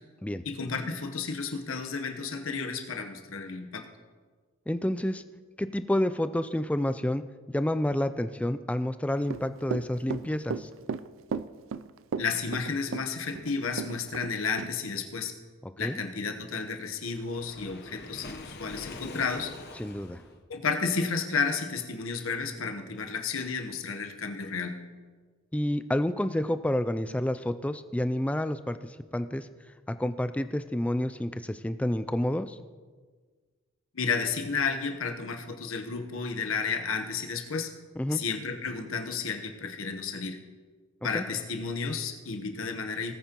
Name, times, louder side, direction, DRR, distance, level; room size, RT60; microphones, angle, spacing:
voice 1, 0.4-3.8 12.2-15.3 15.8-19.5 20.5-24.8 33.9-37.7 38.1-40.4 41.0-43.1, left 5 dB, 80° left, 5 dB, 1.1 m, -32 dB
voice 2, 4.7-5.2 5.6-7.2 7.5-10.7 15.6-16.0 19.8-20.2 25.5-29.5 30.0-32.6 38.0-38.2 41.1-41.3, left 1 dB, 5° left, 11 dB, 0.3 m, -29 dB
Run / Walk footsteps, 9.2-14.3 14.6-14.7, right 5 dB, 65° right, 0.4 m, -34 dB
Waves surf, 17.0-20.4, left 2 dB, 55° left, 1.0 m, -44 dB
18.5 x 8.9 x 3.0 m, 1.5 s
head